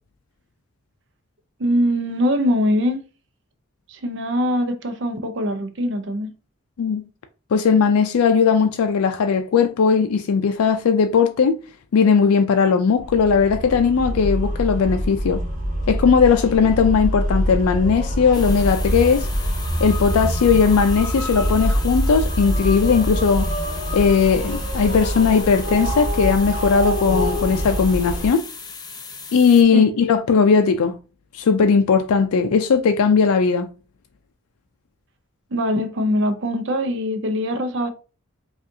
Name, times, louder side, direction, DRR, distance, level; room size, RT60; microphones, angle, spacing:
voice 1, 1.6-3.0 3.9-6.3 29.7-29.9 35.5-37.9, equal, 55° right, 0.6 m, -22 dB
voice 2, 7.5-11.6 11.9-15.4 15.9-19.3 19.8-23.5 23.9-28.4 29.3-30.9 31.3-33.7, left 5 dB, 90° left, 0.4 m, -18 dB
sound 1, 13.0-28.3, equal, 35° right, 1.1 m, -25 dB
sound 2, 18.3-29.6, left 5 dB, 20° left, 0.4 m, -37 dB
5.0 x 2.4 x 2.7 m
head